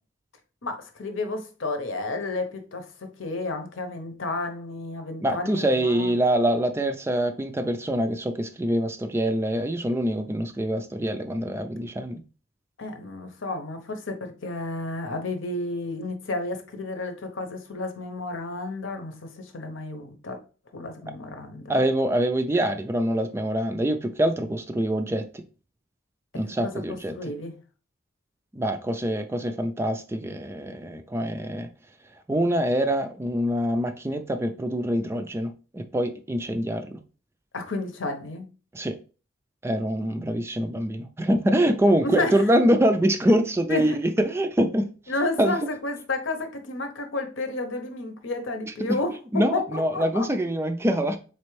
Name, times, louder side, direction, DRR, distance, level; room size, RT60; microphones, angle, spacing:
voice 1, 0.6-6.1 12.8-20.4 20.7-21.7 26.6-27.5 37.5-38.5 42.0-42.4 43.3-43.4 43.7-44.0 45.1-50.3, left 2 dB, 80° left, 0.9 m, -31 dB
voice 2, 5.2-12.2 21.7-25.4 26.3-27.3 28.5-31.7 32.3-37.0 38.7-39.0 39.6-44.9 45.4-45.5 49.3-51.2, right 1 dB, 15° right, 0.3 m, -25 dB
4.2 x 3.3 x 3.1 m
head